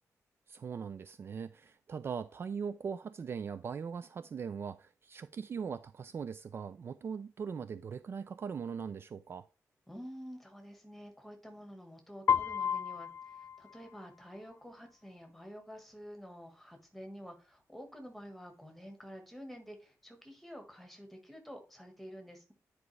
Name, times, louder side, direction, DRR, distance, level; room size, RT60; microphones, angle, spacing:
voice 1, 0.5-9.4, right 6 dB, 40° right, 0.3 m, -40 dB
voice 2, 9.9-22.5, equal, ahead, 1.5 m, -49 dB
Piano, 12.3-14.3, left 7 dB, 45° left, 0.3 m, -33 dB
9.5 x 4.7 x 3.2 m
wide cardioid pair, 175°, 6 cm